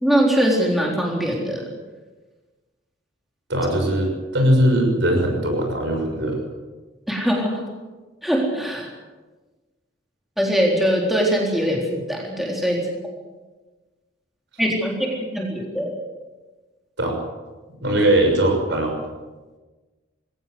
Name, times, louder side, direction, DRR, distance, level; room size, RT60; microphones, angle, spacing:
voice 1, 0.0-1.6 7.1-7.6 8.2-8.9 10.4-12.9 14.6-15.9, equal, ahead, -2 dB, 3.8 m, -22 dB
voice 2, 3.5-6.4 17.0-17.1 17.8-18.9, right 1 dB, 60° right, 3 dB, 6.4 m, -20 dB
21.5 x 17.5 x 8.0 m, 1.3 s
head